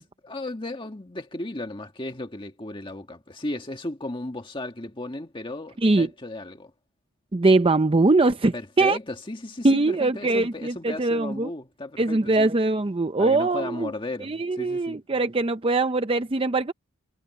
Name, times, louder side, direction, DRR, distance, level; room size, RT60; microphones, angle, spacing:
voice 1, 0.0-6.7 8.5-12.5 13.2-15.0, left 2 dB, 25° left, 1.7 m, -35 dB
voice 2, 5.8-6.1 7.3-9.0 9.6-11.5 12.0-13.9 14.2-16.7, right 2 dB, 25° right, 0.6 m, -22 dB
head